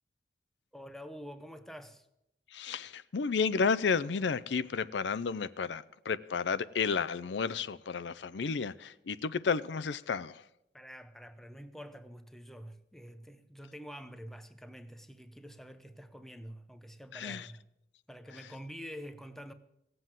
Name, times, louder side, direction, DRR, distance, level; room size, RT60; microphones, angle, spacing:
voice 1, 0.7-2.1 10.7-17.6 18.1-19.5, equal, ahead, 0.7 m, -47 dB
voice 2, 2.5-10.4 17.1-17.5, left 5 dB, 90° left, 0.5 m, -32 dB
17.0 x 7.8 x 7.5 m
head